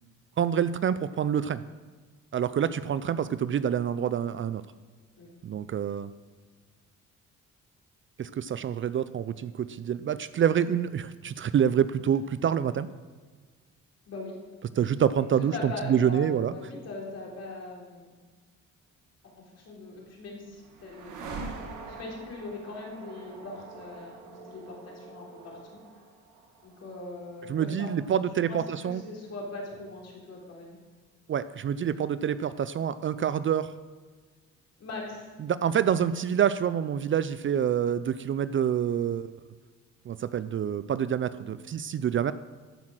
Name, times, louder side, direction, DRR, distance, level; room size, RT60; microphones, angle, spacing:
voice 1, 0.4-1.6 2.3-4.6 5.4-6.1 8.2-12.9 14.8-16.5 27.5-29.0 31.3-33.7 35.4-39.3 40.1-42.3, right 8 dB, 40° right, 15 dB, 0.4 m, -27 dB
voice 2, 14.1-14.4 15.2-18.1 19.2-21.5 21.9-25.8 26.6-30.8 34.8-35.3, left 2 dB, 55° left, -2 dB, 3.5 m, -41 dB
sound 1, 19.7-29.8, right 3 dB, 85° right, 1.9 m, -45 dB
14.0 x 5.8 x 6.1 m, 1.4 s
cardioid pair, 90°, 30 cm